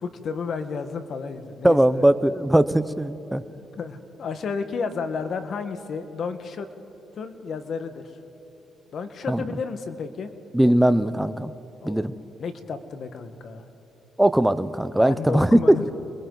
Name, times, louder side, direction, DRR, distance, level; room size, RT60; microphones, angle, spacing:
voice 1, 0.0-2.0 3.7-6.7 7.1-8.0 8.9-10.3 11.8-12.1 12.4-13.7 14.9-15.9, left 5 dB, 60° left, 9 dB, 1.5 m, -32 dB
voice 2, 1.6-3.4 9.3-9.4 10.5-11.5 11.8-12.1 14.2-15.7, right 1 dB, 5° right, 13 dB, 0.7 m, -19 dB
30.0 x 22.0 x 4.0 m, 2.9 s
cardioid pair, 90°, 0 cm